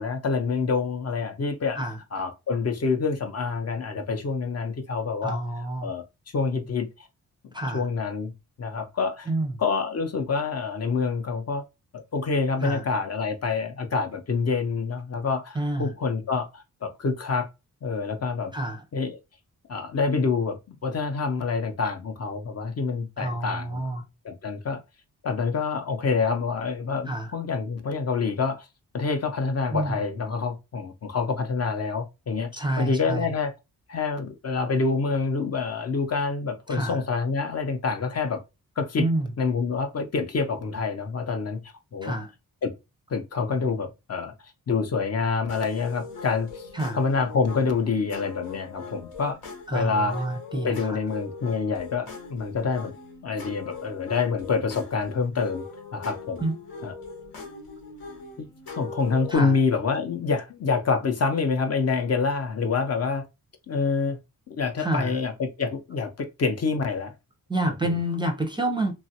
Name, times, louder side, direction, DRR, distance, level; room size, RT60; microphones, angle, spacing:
voice 1, 0.0-1.8 2.1-5.4 5.8-6.0 6.3-7.1 7.7-8.3 8.6-9.3 9.6-11.6 11.9-17.5 17.8-18.5 18.9-19.2 19.7-23.8 24.2-24.8 25.2-28.7 28.9-33.5 33.9-38.4 38.8-39.0 39.4-42.2 42.6-42.7 43.1-44.3 44.7-49.4 49.7-50.2 50.6-52.9 53.2-55.6 55.9-56.4 56.8-56.9 58.4-58.5 58.7-63.3 63.7-64.2 64.5-67.1, left 4 dB, 45° left, 0.6 m, -27 dB
voice 2, 5.2-5.9 7.5-7.9 9.3-9.6 12.6-12.8 15.5-15.9 18.5-18.8 23.2-24.0 27.1-27.3 29.7-30.0 32.5-33.3 36.7-37.0 39.0-39.3 42.0-42.3 46.7-47.0 49.7-51.0 56.4-56.6 59.3-59.6 64.8-65.2 67.5-68.9, right 1 dB, 15° right, 0.5 m, -28 dB
sound 1, 45.5-59.4, left 4 dB, 90° left, 1.2 m, -41 dB
3.1 x 2.4 x 2.7 m
wide cardioid pair, 105°, 35 cm